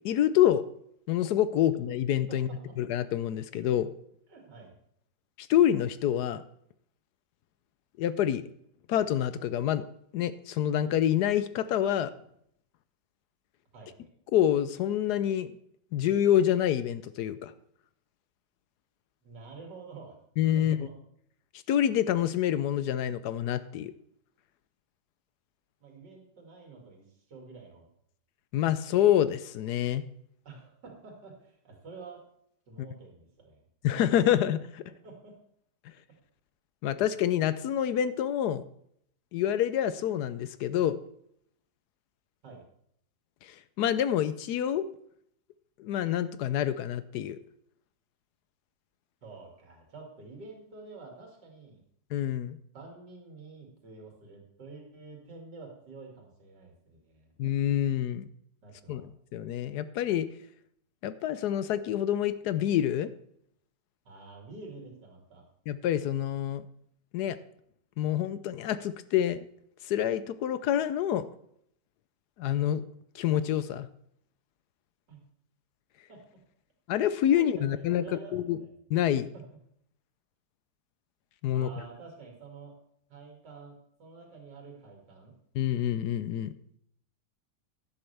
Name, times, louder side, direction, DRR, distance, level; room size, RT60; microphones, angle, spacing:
voice 1, 0.0-0.6 1.1-2.5 2.8-3.9 5.4-6.4 8.0-8.4 8.9-9.8 10.1-12.1 14.3-15.5 15.9-17.5 20.4-20.8 21.7-23.9 28.5-30.0 33.8-34.8 36.8-38.6 39.3-41.0 43.4-44.8 45.8-47.4 52.1-52.6 57.4-58.3 58.9-59.0 59.3-60.3 61.0-63.1 65.7-66.7 67.1-67.4 68.0-69.4 69.8-71.3 72.4-72.8 73.1-73.9 76.9-78.0 78.3-78.6 78.9-79.3 81.4-81.7 85.5-86.5, left 11 dB, 75° left, 14 dB, 1.1 m, -27 dB
voice 2, 2.3-2.8 4.3-4.8 13.7-14.1 19.2-20.2 20.5-20.9 25.8-27.9 30.4-32.2 32.7-33.6 35.0-35.4 42.4-42.6 49.2-51.8 52.7-57.3 58.6-59.0 64.0-65.4 75.1-75.2 76.1-76.4 77.3-77.7 78.0-78.7 79.3-79.6 81.5-82.7 83.1-85.3, right 4 dB, 70° right, 0 dB, 3.0 m, -48 dB
11.0 x 11.0 x 3.4 m, 0.70 s
omnidirectional pair, 1.9 m